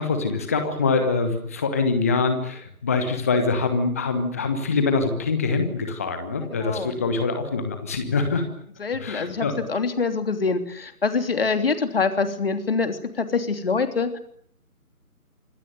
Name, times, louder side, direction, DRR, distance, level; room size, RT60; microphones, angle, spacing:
voice 1, 0.0-8.4 9.0-9.6, left 4 dB, 10° left, 7 dB, 1.2 m, -24 dB
voice 2, 6.5-7.0 8.8-14.2, left 4 dB, 40° left, 8 dB, 3.3 m, -25 dB
26.5 x 19.5 x 9.4 m, 0.64 s
figure-of-eight pair, 155°, 45 cm